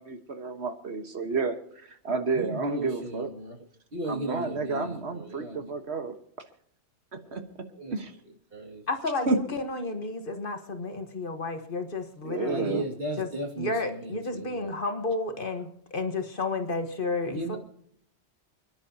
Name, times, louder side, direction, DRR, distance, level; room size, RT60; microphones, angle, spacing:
voice 1, 0.0-1.6 1.8-3.3 4.1-6.2 7.1-7.4 7.9-8.1 9.3-9.4 12.2-12.8, right 4 dB, 75° right, 7 dB, 1.6 m, -30 dB
voice 2, 2.3-3.5 3.9-5.7 7.2-7.3 7.8-7.9 8.5-8.8 12.5-14.7 17.2-17.6, right 1 dB, 55° right, 1 dB, 2.4 m, -36 dB
voice 3, 8.9-12.8 13.2-13.3 13.6-17.6, left 3 dB, 50° left, 7 dB, 1.5 m, -32 dB
29.5 x 10.5 x 2.8 m, 0.67 s
omnidirectional pair, 1.1 m